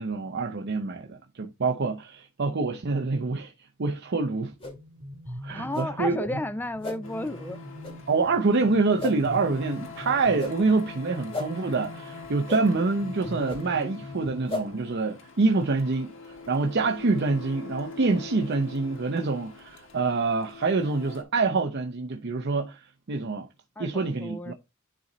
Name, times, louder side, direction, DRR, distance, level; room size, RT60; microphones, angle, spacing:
voice 1, 0.0-3.5 3.8-4.5 5.4-6.3 8.1-16.1 16.5-23.5 23.8-24.5, right 3 dB, 55° right, 0.7 m, -26 dB
sound 1, 4.5-15.0, equal, 75° right, 2.7 m, -43 dB
sound 2, 4.6-4.8 5.7-5.9 6.8-7.0 7.8-7.9 9.0-9.2 10.4-10.5 11.3-11.5 12.5-12.6 13.5-13.6 14.5-14.6, left 2 dB, 30° left, 2.2 m, -33 dB
voice 2, 5.3-7.6 23.8-24.5, left 1 dB, 10° left, 0.4 m, -33 dB
Printer, 7.0-21.2, left 4 dB, 70° left, 1.4 m, -44 dB
10.0 x 3.9 x 3.0 m
head